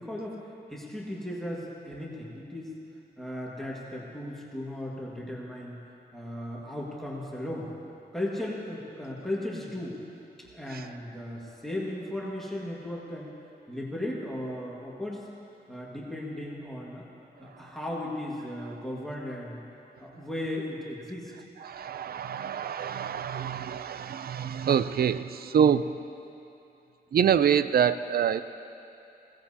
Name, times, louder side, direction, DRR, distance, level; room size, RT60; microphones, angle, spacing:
voice 1, 0.0-2.7 3.2-5.8 6.1-7.7 8.1-10.0 10.4-13.3 13.7-15.3 15.7-17.1 17.4-19.6 20.0-21.3, left 1 dB, ahead, -5 dB, 1.8 m, -36 dB
voice 2, 21.6-25.9 27.1-28.4, right 8 dB, 65° right, 12 dB, 0.4 m, -26 dB
20.5 x 16.5 x 2.8 m, 2.7 s
wide cardioid pair, 150°, 17 cm